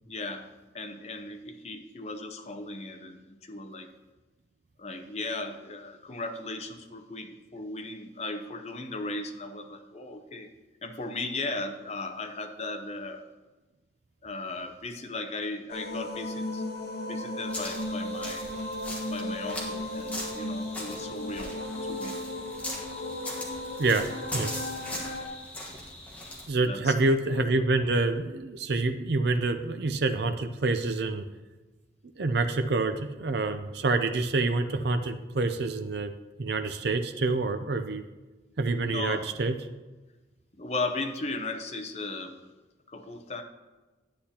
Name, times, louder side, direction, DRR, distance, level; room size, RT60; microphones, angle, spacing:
voice 1, 0.1-0.5 0.7-3.9 4.8-10.5 10.8-13.2 14.2-16.6 17.1-18.5 19.0-21.5 21.8-22.2 26.6-26.9 38.8-39.3 40.6-42.4 42.9-43.4, left 2 dB, 35° left, 5 dB, 0.7 m, -36 dB
sound 1, 15.7-25.3, left 1 dB, 55° left, 1.3 m, -35 dB
sound 2, 17.5-26.5, left 1 dB, 10° left, 1.3 m, -40 dB
voice 2, 23.8-24.5 26.5-31.2 32.2-38.0 38.6-39.6, right 3 dB, 60° right, 8 dB, 0.5 m, -27 dB
10.0 x 8.2 x 2.9 m, 1.2 s
head